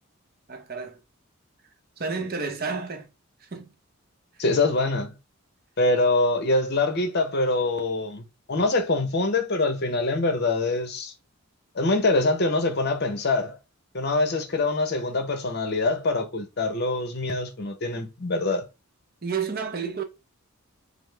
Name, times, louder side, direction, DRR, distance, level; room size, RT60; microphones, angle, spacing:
voice 1, 0.5-1.0 2.0-3.1 3.4-3.7 19.2-20.0, right 5 dB, 45° right, 0.7 m, -31 dB
voice 2, 4.4-5.1 5.8-11.1 11.7-13.6 13.9-18.6, left 2 dB, 50° left, 0.7 m, -24 dB
5.2 x 2.0 x 3.3 m
head